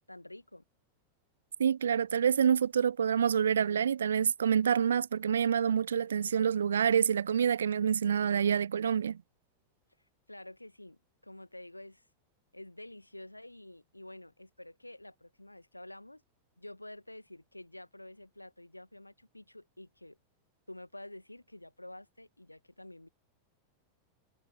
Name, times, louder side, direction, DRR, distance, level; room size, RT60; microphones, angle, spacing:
voice 1, 0.1-0.6 10.3-12.0 12.5-16.2 16.6-20.2 20.7-23.1, left 1 dB, 85° left, 2.0 m, -49 dB
voice 2, 1.6-9.2, right 8 dB, 70° right, 0.4 m, -27 dB
figure-of-eight pair, 90°, 0 cm